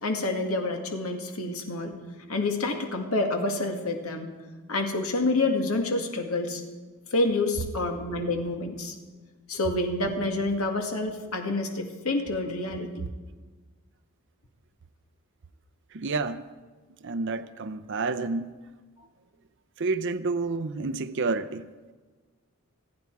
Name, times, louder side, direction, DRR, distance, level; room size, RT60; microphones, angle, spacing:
voice 1, 0.0-1.9 2.3-4.3 4.7-6.6 7.1-9.0 9.5-12.9, left 2 dB, 80° left, 3 dB, 2.1 m, -28 dB
voice 2, 15.9-16.5 17.0-18.6 19.8-21.7, right 3 dB, 55° right, 12 dB, 0.6 m, -29 dB
27.5 x 9.7 x 4.7 m, 1.4 s
head